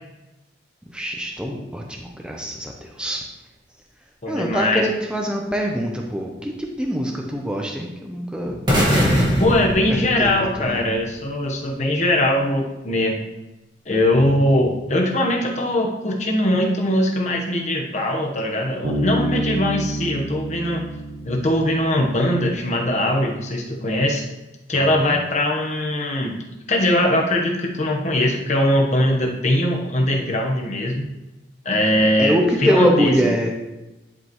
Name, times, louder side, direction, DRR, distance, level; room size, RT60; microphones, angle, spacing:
voice 1, 0.9-3.2 4.3-8.6 9.0-9.2 9.9-10.9 14.3-14.6 24.8-25.2 32.2-33.5, equal, 5° right, 1 dB, 0.7 m, -24 dB
voice 2, 4.2-4.8 9.4-13.2 13.9-20.9 21.2-24.2 24.7-26.3 26.7-31.1 31.6-32.4 32.6-33.1, left 1 dB, 35° left, 0 dB, 1.1 m, -21 dB
sound 1, 8.7-10.8, equal, 25° right, 1.7 m, -20 dB
Bass guitar, 18.8-22.4, right 1 dB, 45° right, 0.9 m, -28 dB
11.0 x 5.1 x 3.1 m, 1.0 s
head